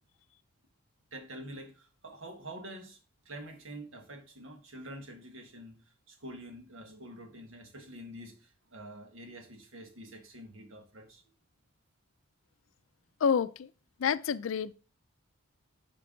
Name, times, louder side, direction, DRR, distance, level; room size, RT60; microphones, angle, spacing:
voice 1, 1.1-3.0 3.2-11.2, right 1 dB, 70° right, 1.5 m, -47 dB
voice 2, 13.2-13.7 14.0-14.7, left 6 dB, 70° left, 0.4 m, -28 dB
10.0 x 4.6 x 3.8 m
head